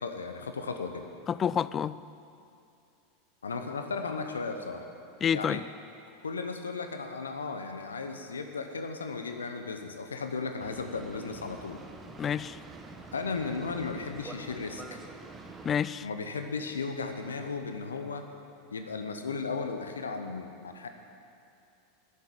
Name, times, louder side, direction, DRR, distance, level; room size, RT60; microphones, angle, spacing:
voice 1, 0.0-1.1 3.4-4.8 5.3-5.6 6.2-11.8 13.1-14.8 16.0-18.2 18.7-20.9, left 4 dB, 85° left, 6 dB, 0.9 m, -35 dB
voice 2, 1.3-2.0 5.2-5.6 12.2-12.6 15.6-16.1, left 8 dB, 30° left, 18 dB, 0.3 m, -28 dB
Boat Water vehicle, 10.6-15.8, right 3 dB, 20° right, 1.2 m, -46 dB
11.5 x 7.5 x 8.4 m, 2.6 s
hypercardioid pair, 90°, 0 cm